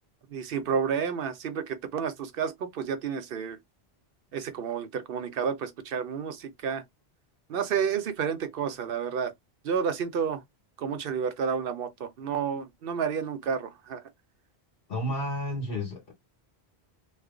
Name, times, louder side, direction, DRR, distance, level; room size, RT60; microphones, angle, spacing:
voice 1, 0.3-3.6 4.3-6.8 7.5-9.3 9.6-10.4 10.8-14.0, right 7 dB, 65° right, 0.8 m, -30 dB
voice 2, 14.9-16.1, equal, 65° left, 1.6 m, -31 dB
3.2 x 2.1 x 3.6 m
omnidirectional pair, 1.1 m